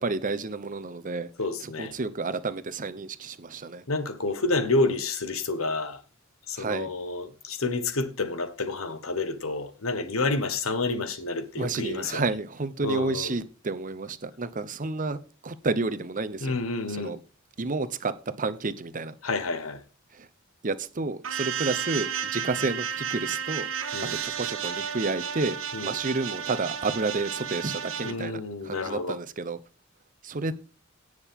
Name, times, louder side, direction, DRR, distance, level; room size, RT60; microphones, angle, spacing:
voice 1, 0.0-1.3 1.6-3.8 6.6-6.9 11.6-16.6 16.9-17.2 17.6-19.1 20.1-20.3 20.6-23.7 24.2-29.6 30.2-30.5, right 3 dB, 40° right, 0.8 m, -30 dB
voice 2, 1.4-1.9 3.9-6.0 6.5-12.2 12.8-13.3 16.4-17.2 19.2-19.8 23.9-24.2 25.7-25.9 28.0-29.2, left 3 dB, 90° left, 1.3 m, -29 dB
sound 1, 21.2-28.1, right 7 dB, 75° right, 1.3 m, -32 dB
17.5 x 6.5 x 3.6 m
head